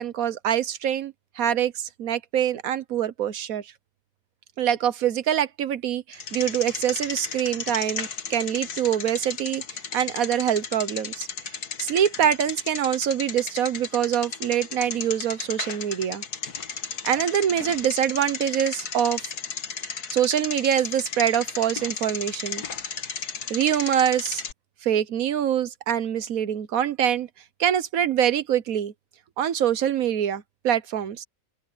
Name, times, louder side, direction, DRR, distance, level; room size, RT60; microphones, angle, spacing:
voice 1, 0.0-3.7 4.6-9.6 9.9-16.2 17.0-19.3 20.1-22.6 23.5-24.4 24.8-27.3 27.6-28.9 29.4-31.2, right 9 dB, 60° right, 1.3 m, -25 dB
Bicycle, 6.1-24.5, left 6 dB, 65° left, 2.1 m, -34 dB
open air
omnidirectional pair, 1.8 m